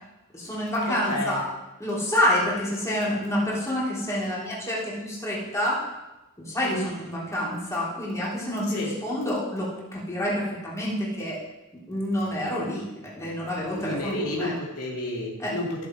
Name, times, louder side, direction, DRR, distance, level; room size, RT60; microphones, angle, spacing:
voice 1, 0.3-1.5 1.8-5.8 6.4-11.4 11.9-14.6 15.4-15.6, left 1 dB, 15° left, -6 dB, 3.5 m, -28 dB
voice 2, 0.9-1.4 6.6-6.9 8.7-8.9 13.8-15.9, left 1 dB, 75° left, -2 dB, 2.5 m, -31 dB
15.0 x 7.1 x 4.7 m, 1.0 s
head